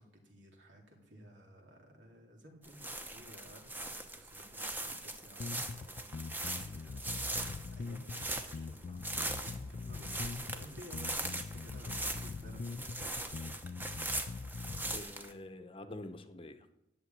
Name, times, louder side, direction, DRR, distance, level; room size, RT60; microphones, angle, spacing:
voice 1, 0.0-14.0, equal, 85° right, 1 dB, 3.2 m, -55 dB
sound 1, 2.6-15.3, right 2 dB, 10° right, 0.9 m, -41 dB
sound 2, 5.4-15.0, left 4 dB, 45° left, 0.3 m, -43 dB
voice 2, 14.9-16.8, left 1 dB, 30° left, 9 dB, 0.8 m, -47 dB
11.5 x 7.1 x 9.2 m, 0.85 s
head